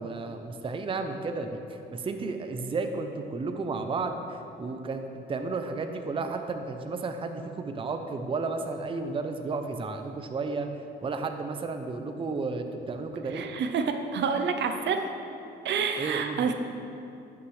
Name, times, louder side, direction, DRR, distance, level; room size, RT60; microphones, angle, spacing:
voice 1, 0.0-10.7 11.0-13.4 16.0-16.5, right 3 dB, 25° right, 6 dB, 0.5 m, -33 dB
voice 2, 13.3-15.0 15.6-16.5, right 6 dB, 65° right, 6 dB, 0.6 m, -28 dB
11.0 x 5.9 x 3.3 m, 2.7 s
cardioid pair, 90°, 20 cm